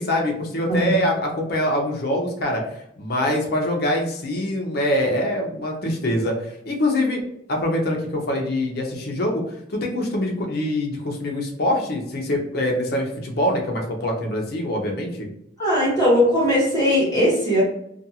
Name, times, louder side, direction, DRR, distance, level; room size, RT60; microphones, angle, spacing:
voice 1, 0.0-2.6 3.0-7.2 7.5-9.4 9.7-15.3, left 1 dB, 55° left, 1 dB, 0.6 m, -24 dB
voice 2, 15.6-17.6, equal, 20° left, -8 dB, 1.1 m, -19 dB
2.5 x 2.3 x 2.8 m, 0.76 s
head